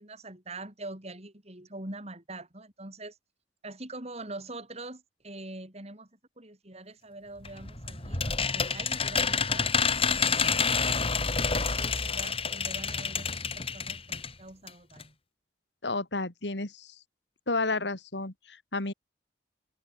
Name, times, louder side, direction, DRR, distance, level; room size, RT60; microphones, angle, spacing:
voice 1, 0.0-3.2 3.6-6.1 6.4-9.7 10.2-13.3 13.6-15.1, right 2 dB, 35° right, 6.2 m, -44 dB
sound 1, 7.4-14.3 14.7-14.8 15.0-15.1, left 5 dB, 35° left, 5.0 m, -28 dB
voice 2, 15.8-16.9 17.5-18.9, left 3 dB, 75° left, 2.7 m, -31 dB
head